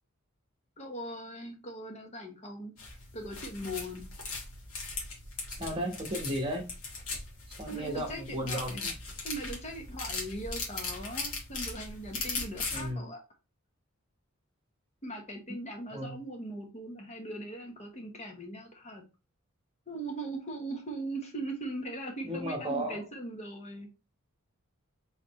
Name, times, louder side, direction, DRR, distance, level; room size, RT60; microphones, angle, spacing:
voice 1, 0.8-2.7 3.1-4.1 7.7-8.9 9.2-13.2 15.0-19.0 19.9-23.9, right 1 dB, 30° left, 1.0 m, -40 dB
sound 1, 2.8-12.9, left 3 dB, 90° left, 1.7 m, -39 dB
voice 2, 5.5-6.6 7.6-8.9 12.7-13.1 15.9-16.2 22.2-23.0, equal, 25° right, 1.1 m, -34 dB
4.1 x 3.9 x 3.0 m
head